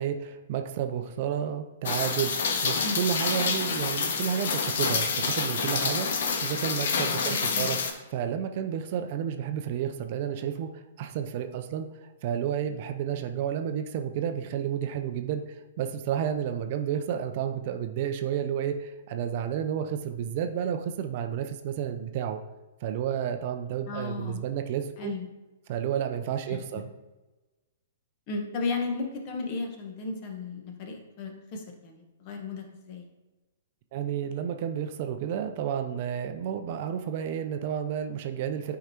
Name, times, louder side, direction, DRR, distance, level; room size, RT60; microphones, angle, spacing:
voice 1, 0.0-22.4 22.8-25.1 25.7-26.9 33.9-38.8, right 9 dB, 45° right, 7 dB, 0.5 m, -31 dB
Rain, 1.9-7.9, left 5 dB, 60° left, 0.8 m, -28 dB
voice 2, 7.3-7.7 23.9-24.4 25.0-25.3 26.5-26.6 28.3-33.1, left 4 dB, 40° left, 3 dB, 1.2 m, -35 dB
8.9 x 4.8 x 2.9 m, 1.1 s
figure-of-eight pair, 115°, 0 cm